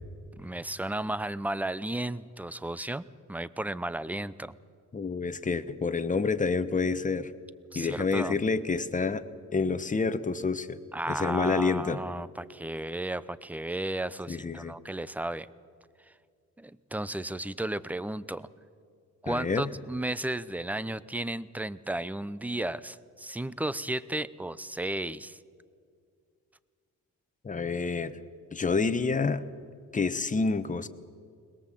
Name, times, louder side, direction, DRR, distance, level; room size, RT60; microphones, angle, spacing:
voice 1, 0.4-4.5 7.7-8.4 10.9-15.5 16.1-16.2 16.6-18.5 19.2-25.4, right 1 dB, 5° right, 17 dB, 0.6 m, -34 dB
voice 2, 4.9-7.3 7.7-9.2 9.5-10.8 11.1-12.0 14.3-14.7 19.3-19.7 27.4-28.2 28.5-29.4 29.9-30.9, left 4 dB, 25° left, 12 dB, 1.1 m, -28 dB
22.0 x 20.5 x 7.6 m, 2.2 s
cardioid pair, 90°, 30 cm